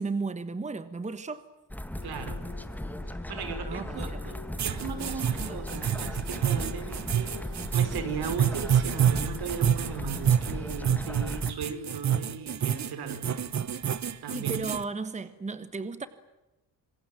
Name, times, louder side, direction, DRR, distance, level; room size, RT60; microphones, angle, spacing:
voice 1, 0.0-1.4 3.6-4.2 5.0-5.1 5.5-5.6 14.3-16.1, right 4 dB, 20° right, 1.3 m, -34 dB
sound 1, 1.7-11.5, left 1 dB, 5° left, 1.7 m, -37 dB
sound 2, 1.9-10.3, left 4 dB, 55° left, 7.9 m, -51 dB
voice 2, 2.0-2.4 3.1-13.2 14.2-14.6, right 6 dB, 75° right, 5.2 m, -37 dB
sound 3, 4.6-14.8, right 9 dB, 45° right, 1.3 m, -27 dB
27.0 x 21.5 x 9.1 m
cardioid pair, 145°, 39 cm